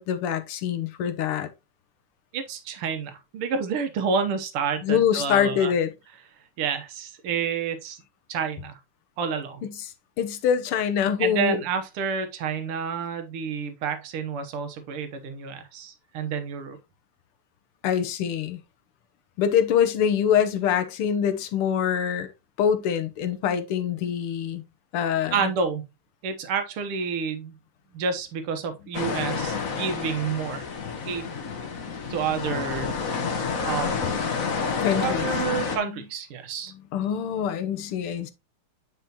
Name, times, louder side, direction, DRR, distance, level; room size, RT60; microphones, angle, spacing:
voice 1, 0.0-1.5 4.8-5.9 9.6-9.7 10.2-11.6 17.8-18.6 19.4-22.3 22.6-24.6 24.9-25.5 34.8-36.0 36.9-38.3, left 8 dB, 85° left, 1.8 m, -25 dB
voice 2, 2.3-5.7 6.6-8.0 8.3-8.8 9.2-9.6 11.2-16.8 25.3-25.9 26.2-27.5 27.9-30.6 31.1-31.3 32.1-32.9 33.6-34.1 35.0-36.7, right 6 dB, 85° right, 2.0 m, -29 dB
sound 1, 28.9-35.8, left 5 dB, 45° left, 1.4 m, -29 dB
9.3 x 5.0 x 2.9 m
omnidirectional pair, 2.4 m